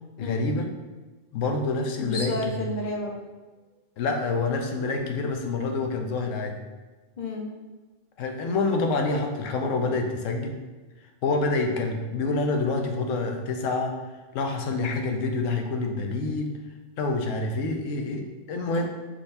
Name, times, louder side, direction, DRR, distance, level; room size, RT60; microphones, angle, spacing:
voice 1, 0.2-0.7 1.3-2.6 4.0-6.6 8.2-10.5 11.2-13.9 14.3-16.5 17.0-18.8, left 3 dB, 90° left, 4 dB, 1.0 m, -27 dB
voice 2, 2.0-3.2 7.2-7.5, left 2 dB, 45° left, 0 dB, 0.8 m, -31 dB
4.8 x 3.8 x 2.6 m, 1.2 s
omnidirectional pair, 1.3 m